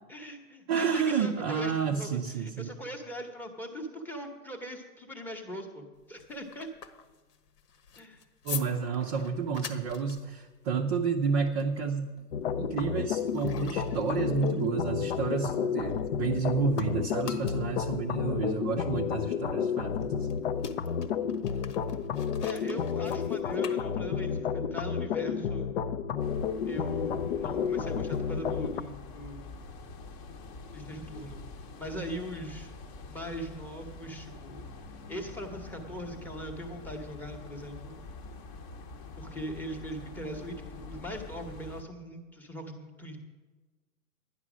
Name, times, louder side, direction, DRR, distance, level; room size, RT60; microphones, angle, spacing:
voice 1, 0.1-6.7 8.0-8.2 22.4-25.7 26.7-29.5 30.7-31.4 31.8-32.7 33.1-34.7 35.1-38.0 39.2-43.2, equal, 5° left, 5 dB, 1.0 m, -40 dB
voice 2, 0.7-2.7 8.4-12.1 12.6-20.3, right 5 dB, 25° right, 2 dB, 0.6 m, -30 dB
sound 1, 5.9-16.4 16.7-24.4, left 7 dB, 80° left, 1.4 m, -46 dB
sound 2, 12.3-28.8, left 7 dB, 40° left, 0.5 m, -31 dB
sound 3, 26.2-41.8, left 3 dB, 25° left, 0.9 m, -46 dB
11.5 x 10.0 x 6.1 m, 1.3 s
hypercardioid pair, 145°, 47 cm